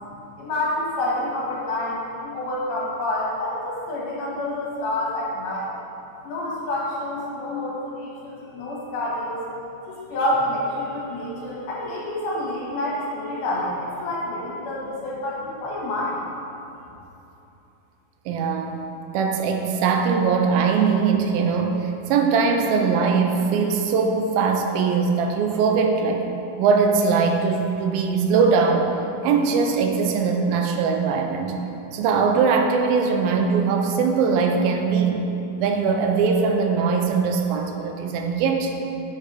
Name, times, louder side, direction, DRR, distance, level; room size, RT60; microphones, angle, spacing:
voice 1, 0.4-5.7 6.2-9.4 9.9-13.7 14.0-16.2, left 1 dB, 80° left, -5 dB, 3.4 m, -28 dB
voice 2, 18.3-18.8 19.1-26.3 26.6-28.9 29.2-31.6 31.9-35.3 35.6-38.7, right 5 dB, 85° right, 3 dB, 2.4 m, -21 dB
8.4 x 5.5 x 4.9 m, 2.9 s
omnidirectional pair, 4.2 m